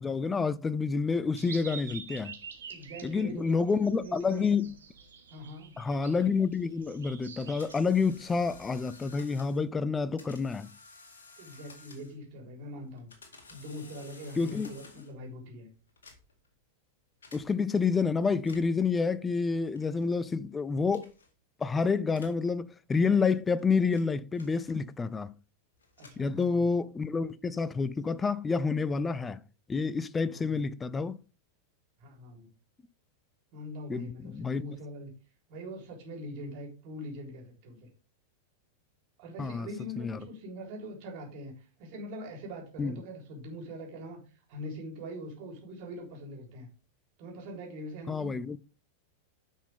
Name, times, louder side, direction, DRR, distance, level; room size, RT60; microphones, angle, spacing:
voice 1, 0.0-2.3 3.0-4.7 5.8-10.7 14.4-14.7 17.3-21.1 21.6-25.3 26.2-29.4 29.7-31.2 33.9-34.6 39.4-39.7 40.0-40.2 42.8-43.0 48.1-48.6, left 4 dB, 15° left, 0.5 m, -28 dB
sound 1, 1.4-9.2, right 6 dB, 65° right, 1.7 m, -48 dB
voice 2, 2.7-4.7 5.3-5.8 11.4-13.1 13.5-15.7 26.0-26.7 30.3-30.6 32.0-32.5 33.5-35.1 35.5-37.9 39.2-41.5 41.8-44.2 44.5-46.7 47.2-48.3, equal, 45° right, 3.7 m, -42 dB
sound 2, 7.4-9.6 10.2-12.3 12.9-15.2 15.9-16.5 17.2-17.4 18.3-18.9 19.7-20.1 20.9-21.3 22.1-22.4 23.2-25.0 25.7-26.8, left 4 dB, 65° left, 2.1 m, -54 dB
10.0 x 6.0 x 3.5 m
figure-of-eight pair, 90°, 0 cm